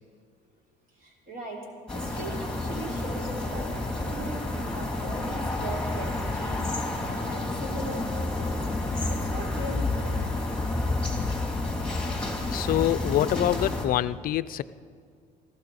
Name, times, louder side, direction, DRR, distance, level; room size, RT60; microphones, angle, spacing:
voice 1, 1.0-1.6 1.9-3.7 3.9-6.7 7.0-8.6 9.1-10.2, right 1 dB, 55° right, -1 dB, 3.2 m, -39 dB
sound 1, 1.9-13.8, left 2 dB, 5° left, 3.0 m, -30 dB
voice 2, 12.5-14.6, left 13 dB, 60° left, 17 dB, 0.4 m, -25 dB
19.0 x 15.0 x 4.1 m, 2.2 s
cardioid pair, 110°, 17 cm